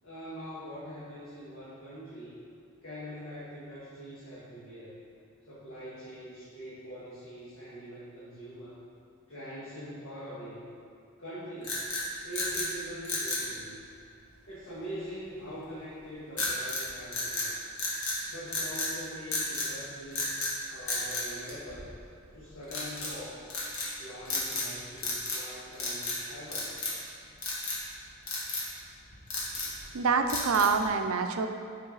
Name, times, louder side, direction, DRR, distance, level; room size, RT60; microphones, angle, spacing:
voice 1, 0.0-2.3 2.8-5.0 5.5-8.8 9.3-10.7 11.2-11.8 12.1-13.9 14.5-17.6 18.3-20.3 20.7-21.9 22.3-23.5 24.0-26.7, equal, 65° left, -10 dB, 1.8 m, -43 dB
sound 1, 11.6-12.7 13.0-13.5 16.4-16.9 17.1-18.2 18.5-18.9 19.3-19.7 20.1-20.6 20.9-22.1 22.7-23.1 23.5-23.9 24.3-24.7 25.0-25.5 25.7-26.2 26.5-27.1 27.4-27.8 28.3-28.7 29.1-29.8 30.3-30.8, left 2 dB, 85° left, 1.8 m, -33 dB
voice 2, 29.9-31.5, right 5 dB, 85° right, 6 dB, 0.5 m, -26 dB
9.5 x 5.6 x 4.0 m, 2.4 s
head